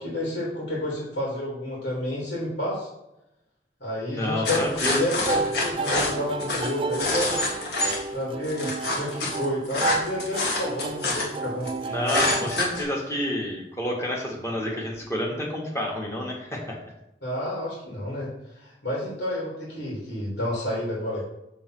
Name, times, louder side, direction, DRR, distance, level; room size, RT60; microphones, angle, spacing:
voice 1, 0.0-2.9 3.8-7.4 8.1-11.7 12.4-12.5 17.2-21.2, left 1 dB, 85° left, -4 dB, 2.9 m, -30 dB
voice 2, 4.1-5.0 11.9-16.7, left 1 dB, 15° left, -2 dB, 1.7 m, -29 dB
sound 1, 4.4-8.0 8.4-11.7 12.1-12.8, left 2 dB, 60° left, 1.7 m, -27 dB
sound 2, 5.3-13.2, right 4 dB, 30° right, 0.4 m, -32 dB
7.3 x 3.8 x 6.0 m, 0.89 s
head